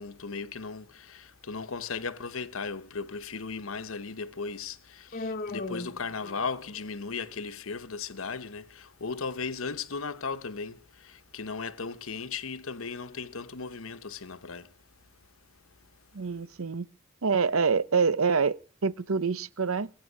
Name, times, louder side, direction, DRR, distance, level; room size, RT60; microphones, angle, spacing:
voice 1, 0.0-14.7, left 4 dB, 80° left, 1.0 m, -36 dB
Human voice, 5.1-6.8, left 2 dB, 45° left, 1.3 m, -37 dB
voice 2, 16.1-16.9 17.2-19.9, right 5 dB, 90° right, 0.8 m, -26 dB
21.5 x 9.0 x 6.3 m
head